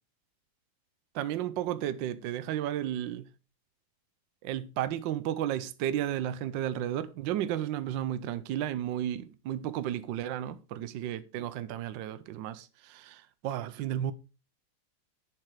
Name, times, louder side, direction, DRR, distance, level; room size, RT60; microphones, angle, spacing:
voice 1, 1.1-3.3 4.4-14.1, right 11 dB, 70° right, 1.3 m, -33 dB
8.7 x 7.5 x 4.7 m
omnidirectional pair, 2.3 m